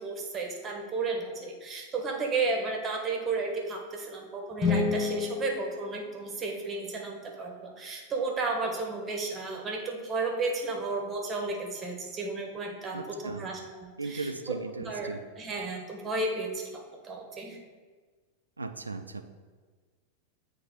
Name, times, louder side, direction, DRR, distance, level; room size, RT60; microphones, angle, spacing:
voice 1, 0.0-17.6, right 3 dB, 25° right, 1 dB, 1.1 m, -33 dB
sound 1, 4.5-6.8, left 4 dB, 20° left, 0.7 m, -30 dB
voice 2, 12.9-13.4 14.0-15.2 18.6-19.2, right 3 dB, 80° right, 8 dB, 0.3 m, -37 dB
8.0 x 3.2 x 3.7 m, 1.4 s
figure-of-eight pair, 90°, 0 cm